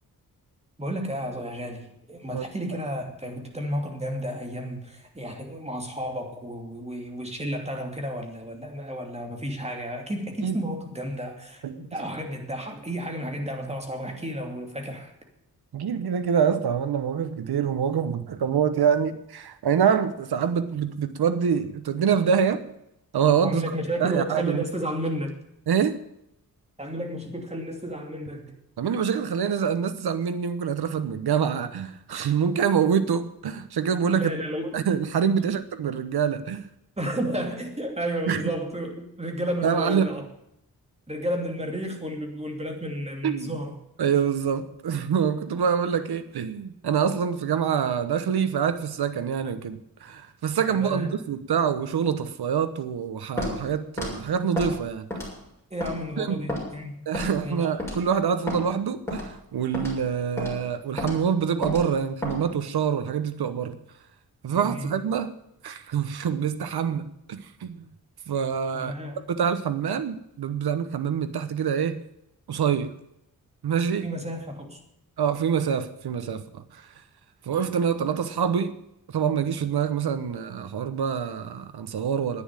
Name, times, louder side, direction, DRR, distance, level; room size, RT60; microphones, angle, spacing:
voice 1, 0.8-15.1 23.4-25.4 26.8-28.5 34.1-34.8 35.4-35.5 37.0-40.2 41.1-43.8 50.7-51.1 55.7-56.9 57.4-57.7 64.5-64.9 68.7-69.2 74.0-74.8, equal, 15° right, 2 dB, 2.8 m, -32 dB
voice 2, 11.6-12.0 15.7-22.6 23.1-23.6 24.0-24.6 25.7-26.0 28.8-34.3 34.7-36.7 38.3-38.4 39.6-40.1 43.2-43.6 44.0-55.1 56.2-56.4 57.1-63.8 64.4-65.3 65.6-67.9 68.3-68.9 69.3-72.0 72.5-73.0 73.6-74.1 75.2-76.9 77.4-78.7 79.1-82.4, right 7 dB, 85° right, 11 dB, 1.0 m, -25 dB
Walk footsteps, 53.4-53.6 54.0-54.1 54.6-54.7 55.1-55.4 55.8-55.9 56.5-56.6 57.1-57.4 57.8-58.0 58.5-58.6 59.1-59.3 59.7-60.0 60.4-60.5 61.0-61.2 61.6-61.8 62.2-62.4, left 1 dB, 5° left, 6.9 m, -30 dB
11.0 x 9.6 x 9.0 m, 0.79 s
wide cardioid pair, 105°, 38 cm